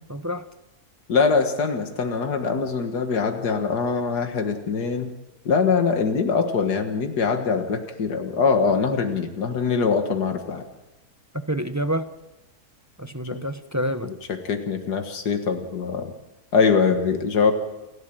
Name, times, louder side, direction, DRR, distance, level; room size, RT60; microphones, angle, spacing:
voice 1, 0.1-0.4 11.5-12.1 13.0-14.1, equal, 15° right, 10 dB, 0.6 m, -27 dB
voice 2, 1.1-5.1 5.5-10.6 14.0-16.1 16.5-17.5, left 5 dB, 90° left, 6 dB, 2.2 m, -23 dB
29.5 x 12.0 x 9.0 m, 1.0 s
omnidirectional pair, 1.7 m